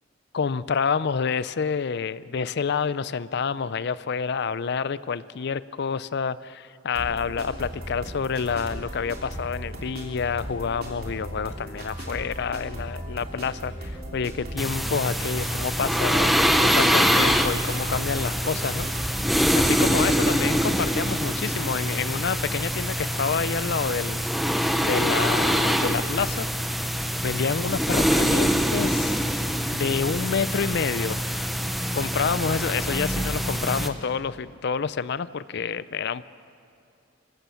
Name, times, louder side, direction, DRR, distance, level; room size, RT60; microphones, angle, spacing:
voice 1, 0.3-18.9 19.6-24.2 24.8-26.5 27.2-29.2 29.7-31.2 31.9-36.2, left 6 dB, 55° left, 17 dB, 0.5 m, -28 dB
sound 1, 7.0-20.7, right 1 dB, 50° right, 3.0 m, -37 dB
sound 2, 14.6-33.9, equal, ahead, 0.8 m, -24 dB
25.5 x 15.0 x 7.1 m, 2.5 s
head